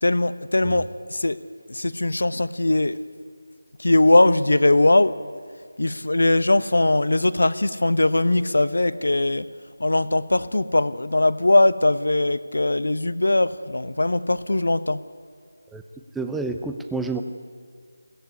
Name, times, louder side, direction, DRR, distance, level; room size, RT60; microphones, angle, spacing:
voice 1, 0.0-1.4 1.7-3.0 3.8-5.1 5.8-9.5 9.8-15.0, left 2 dB, 70° left, 14 dB, 1.1 m, -20 dB
voice 2, 16.1-17.2, right 3 dB, 5° right, 6 dB, 0.7 m, -29 dB
21.5 x 17.0 x 9.6 m, 2.1 s
figure-of-eight pair, 165°, 0 cm